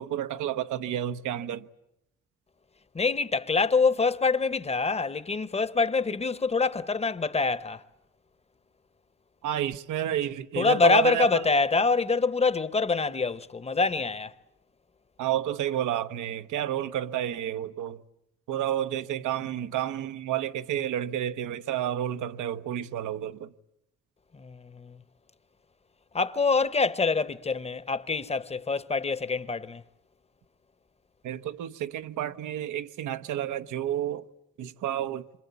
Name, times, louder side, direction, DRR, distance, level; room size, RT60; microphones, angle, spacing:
voice 1, 0.0-1.7 9.4-11.5 15.2-18.0 18.5-23.5 31.2-34.3 34.6-35.3, right 11 dB, 80° right, 0.9 m, -30 dB
voice 2, 2.9-7.8 10.6-14.3 24.3-25.0 26.1-29.8, left 4 dB, 20° left, 0.9 m, -25 dB
26.5 x 24.5 x 8.2 m
cardioid pair, 90°, 30 cm